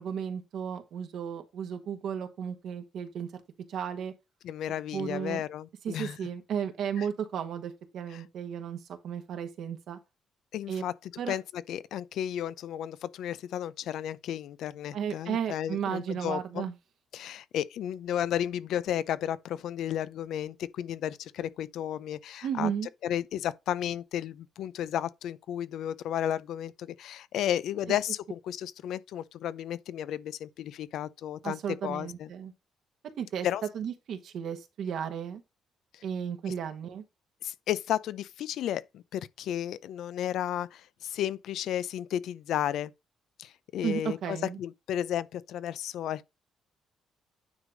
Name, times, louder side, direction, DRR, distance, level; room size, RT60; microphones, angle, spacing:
voice 1, 0.0-3.3 3.7-4.1 4.9-5.4 5.8-10.0 10.7-10.8 11.2-11.4 14.9-16.7 22.4-22.9 31.4-32.5 33.2-33.5 33.7-35.4 36.0-37.0 43.8-44.6, right 8 dB, 75° right, 1.4 m, -34 dB
voice 2, 4.4-6.2 7.0-7.1 8.1-8.2 10.5-16.6 17.1-22.7 23.0-32.3 33.4-33.6 35.9-36.0 36.5-36.6 37.4-42.9 43.4-46.3, left 11 dB, 80° left, 0.5 m, -33 dB
9.5 x 3.2 x 5.0 m
cardioid pair, 90°, 0 cm